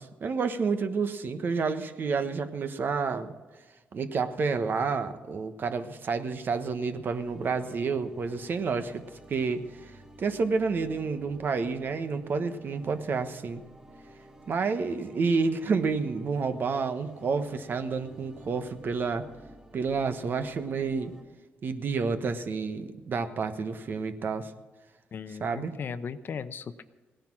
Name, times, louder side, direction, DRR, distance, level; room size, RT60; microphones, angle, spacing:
voice 1, 0.0-3.4 3.9-9.0 9.3-13.6 14.5-19.3 19.7-21.1 21.6-24.5 25.4-25.7, right 4 dB, 55° right, 9 dB, 1.2 m, -29 dB
sound 1, 6.7-21.2, right 1 dB, 15° right, 3.5 m, -53 dB
voice 2, 25.1-26.8, left 6 dB, 55° left, 12 dB, 0.8 m, -37 dB
17.0 x 10.5 x 6.1 m, 1.3 s
cardioid pair, 85°, 4 cm